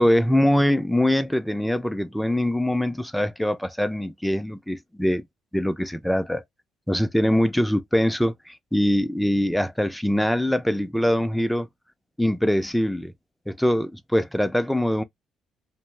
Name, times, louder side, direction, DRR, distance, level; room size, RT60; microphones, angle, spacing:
voice 1, 0.0-5.2 5.5-6.4 6.9-11.7 12.2-13.1 13.5-15.0, equal, 5° left, 0.4 m, -23 dB
2.5 x 2.0 x 3.2 m
supercardioid pair, 65°, 0 cm